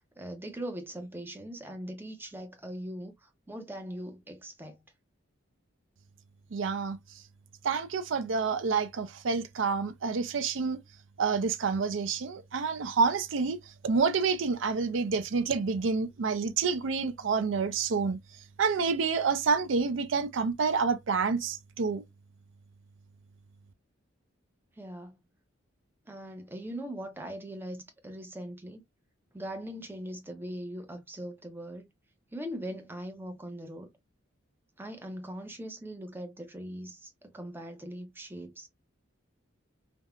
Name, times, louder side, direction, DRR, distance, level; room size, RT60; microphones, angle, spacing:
voice 1, 0.0-4.8 24.7-25.2 26.1-28.8 29.3-31.9 32.3-33.9 34.8-38.7, right 1 dB, 10° right, 0.5 m, -41 dB
voice 2, 6.5-7.0 7.6-10.8 11.2-18.2 18.6-22.0, right 5 dB, 70° right, 0.5 m, -28 dB
3.4 x 2.0 x 2.3 m
head